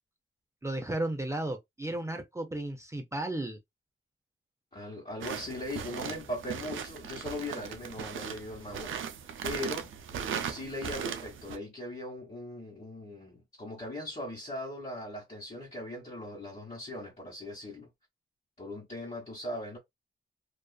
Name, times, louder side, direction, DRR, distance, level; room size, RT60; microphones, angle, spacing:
voice 1, 0.6-3.6, right 1 dB, 15° right, 0.6 m, -34 dB
voice 2, 4.7-8.9 9.4-9.9 10.4-17.9 18.6-19.8, left 1 dB, 35° left, 1.4 m, -39 dB
sound 1, 5.2-11.6, right 7 dB, 75° right, 0.5 m, -38 dB
2.5 x 2.3 x 2.3 m
cardioid pair, 65°, 20 cm